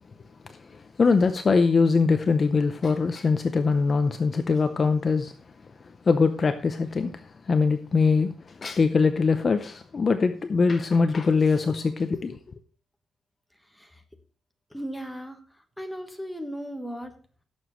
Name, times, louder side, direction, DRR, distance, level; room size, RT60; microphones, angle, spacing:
voice 1, 0.5-5.3 6.0-12.4, left 4 dB, 30° left, 8 dB, 0.6 m, -22 dB
voice 2, 14.7-15.4 15.8-17.1, equal, ahead, 4 dB, 1.3 m, -36 dB
17.5 x 7.0 x 3.1 m, 0.39 s
wide cardioid pair, 175°, 0 cm